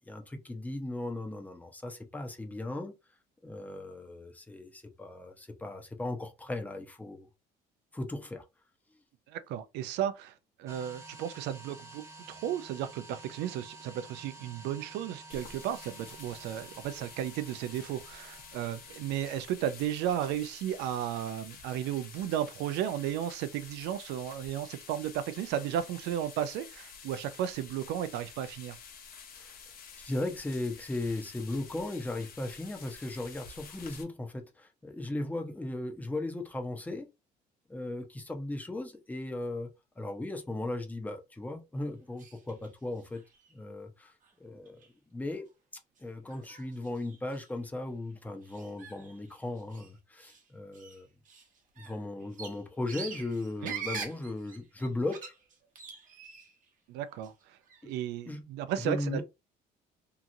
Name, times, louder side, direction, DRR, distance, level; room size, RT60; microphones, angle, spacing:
voice 1, 0.1-2.9 3.4-7.3 7.9-8.4 29.4-29.5 30.0-37.1 37.7-39.7 40.0-43.2 43.5-44.8 45.1-45.5 46.0-51.1 51.8-55.3 57.8-57.9 58.3-58.5 58.8-59.2, left 2 dB, 10° left, 0.6 m, -37 dB
voice 2, 9.3-10.3 10.6-28.8 53.6-53.7 56.9-57.3 57.8-59.2, right 10 dB, 85° right, 0.4 m, -34 dB
sound 1, 10.7-20.0, right 3 dB, 15° right, 1.0 m, -51 dB
sound 2, 15.3-34.0, left 6 dB, 60° left, 0.8 m, -50 dB
sound 3, 42.2-42.7 43.0-43.6 44.2-44.3 44.7-44.9 45.3-45.4 46.0-46.1 46.3-47.6 48.4-49.9 50.2-50.4 50.7-56.6 57.0-57.9, right 6 dB, 50° right, 0.9 m, -45 dB
2.9 x 2.4 x 2.6 m
cardioid pair, 110°, 17 cm